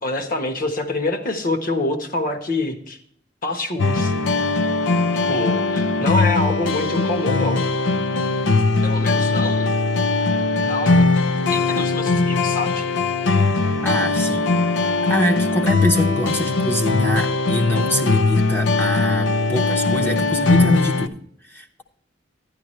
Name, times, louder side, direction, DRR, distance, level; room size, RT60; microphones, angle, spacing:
voice 1, 0.0-3.0 3.4-4.1 5.3-7.6 8.8-9.7 10.6-11.2 11.5-12.8, left 2 dB, 50° left, 5 dB, 1.2 m, -26 dB
sound 1, 3.8-21.1, left 3 dB, 90° left, 0.5 m, -20 dB
voice 2, 13.8-21.8, left 1 dB, 10° left, 2 dB, 0.7 m, -24 dB
10.5 x 10.5 x 3.2 m, 0.66 s
head